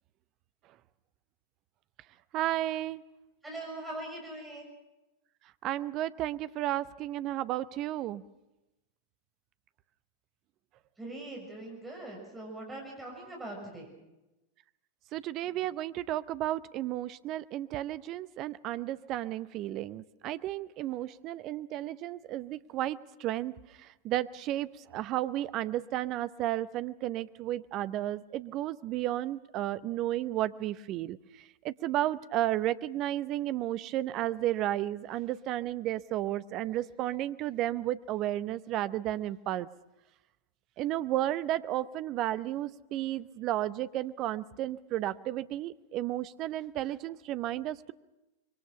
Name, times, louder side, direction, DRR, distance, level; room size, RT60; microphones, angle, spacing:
voice 1, 2.3-3.0 5.6-8.2 15.1-31.2 31.6-39.7 40.8-47.9, right 13 dB, 35° right, 16 dB, 0.8 m, -33 dB
voice 2, 3.4-4.6 11.0-13.9, right 1 dB, 10° right, -1 dB, 6.8 m, -41 dB
26.0 x 23.0 x 5.7 m, 0.98 s
figure-of-eight pair, 90°, 0 cm